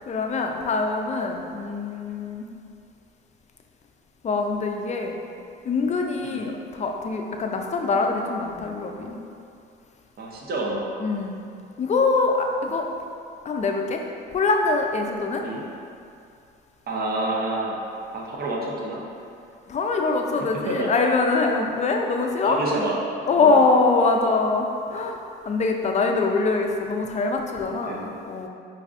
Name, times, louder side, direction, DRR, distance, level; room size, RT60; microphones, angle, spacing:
voice 1, 0.1-2.5 4.2-5.2 5.7-9.2 11.0-11.4 11.8-12.8 13.5-14.0 14.3-15.4 19.7-22.6 23.3-25.2 25.5-28.5, left 3 dB, 35° left, 3 dB, 0.4 m, -23 dB
voice 2, 10.2-10.9 15.4-15.6 16.9-17.8 18.1-19.0 20.4-20.9 22.4-23.0 23.3-23.6 27.9-28.0, right 2 dB, 50° right, -2 dB, 0.7 m, -28 dB
4.6 x 2.6 x 2.4 m, 2.5 s
cardioid pair, 90°, 20 cm